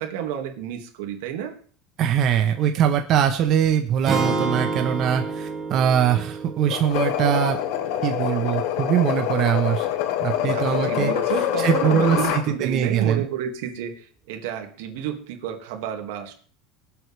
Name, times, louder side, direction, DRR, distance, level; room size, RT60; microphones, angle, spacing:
voice 1, 0.0-1.6 10.4-16.3, right 9 dB, 85° right, 5 dB, 2.1 m, -30 dB
voice 2, 2.0-7.6 8.0-9.9 10.2-11.1 11.6-13.3, right 9 dB, 40° right, 5 dB, 1.0 m, -22 dB
sound 1, 4.1-8.2, right 3 dB, 20° right, 3.6 m, -29 dB
sound 2, 6.7-12.5, left 11 dB, 65° left, 1.3 m, -25 dB
24.0 x 8.0 x 3.4 m, 0.43 s
cardioid pair, 155°, 0 cm